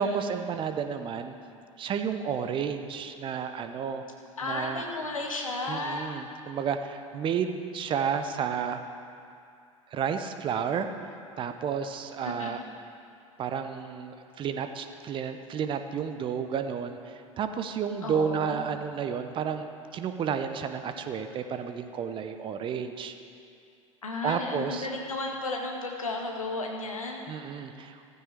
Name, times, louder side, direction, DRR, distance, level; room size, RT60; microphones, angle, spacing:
voice 1, 0.0-1.3 1.8-4.0 4.4-4.8 5.7-8.8 9.9-10.9 11.4-12.6 13.4-23.1 24.2-24.9 27.3-28.0, right 7 dB, 30° right, 8 dB, 0.8 m, -31 dB
voice 2, 4.4-6.2 12.2-12.6 18.0-18.6 24.0-27.3, left 2 dB, 80° left, 1 dB, 1.7 m, -33 dB
14.5 x 14.5 x 3.4 m, 2.5 s
figure-of-eight pair, 80°, 17 cm